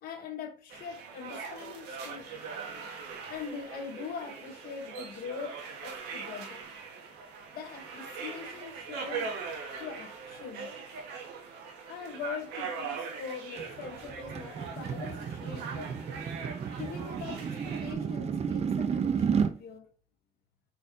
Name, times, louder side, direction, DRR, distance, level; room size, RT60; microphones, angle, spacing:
voice 1, 0.0-2.3 3.3-6.6 7.5-9.3 9.7-10.7 11.9-16.0 16.8-19.9, left 6 dB, 65° left, 1.1 m, -42 dB
sound 1, 0.7-17.9, right 5 dB, 85° right, 1.5 m, -41 dB
sound 2, 13.6-19.6, right 6 dB, 40° right, 0.7 m, -32 dB
5.3 x 4.5 x 3.9 m
cardioid pair, 110°, 17 cm